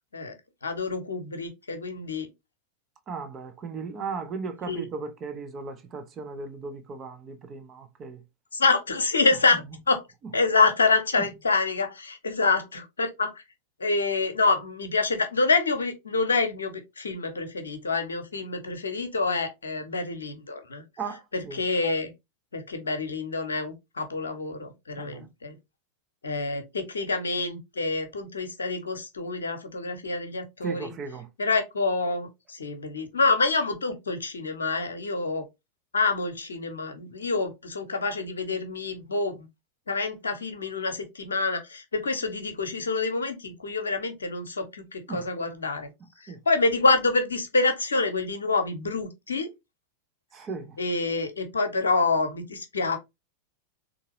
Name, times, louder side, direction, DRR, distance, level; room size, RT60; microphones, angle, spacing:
voice 1, 0.6-2.3 4.7-4.9 8.5-10.0 10.3-13.3 13.8-20.8 21.5-22.1 22.5-25.5 26.2-30.9 31.4-35.4 35.9-39.5 39.9-45.9 46.2-49.5 50.8-53.0, left 3 dB, 70° left, 0.8 m, -27 dB
voice 2, 3.1-8.2 11.2-11.3 21.0-21.6 25.0-25.3 30.6-31.3 45.1-45.3 46.3-46.4 50.3-50.8, right 5 dB, 30° right, 0.7 m, -36 dB
3.7 x 2.6 x 2.9 m
figure-of-eight pair, 90°, 0 cm